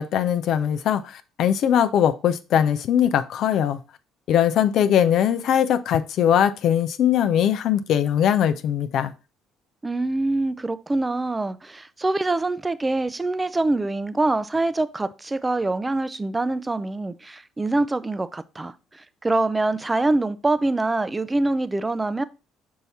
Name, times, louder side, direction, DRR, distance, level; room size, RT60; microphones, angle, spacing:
voice 1, 0.0-3.8 4.3-9.1, left 9 dB, 65° left, 0.5 m, -21 dB
voice 2, 9.8-22.2, right 2 dB, 20° right, 0.5 m, -24 dB
5.5 x 4.7 x 4.1 m
hypercardioid pair, 60°, 0 cm